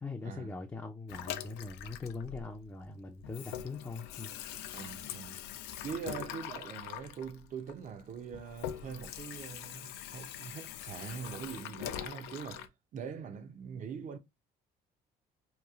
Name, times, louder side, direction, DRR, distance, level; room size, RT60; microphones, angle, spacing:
voice 1, 0.0-4.3, left 3 dB, 15° left, 0.4 m, -41 dB
Water tap faucet / Sink (filling or washing), 1.1-2.9 3.2-12.7, left 11 dB, 85° left, 0.4 m, -43 dB
voice 2, 4.7-5.4 5.8-14.2, right 6 dB, 50° right, 0.6 m, -43 dB
3.0 x 2.3 x 2.3 m
cardioid pair, 110°, 17 cm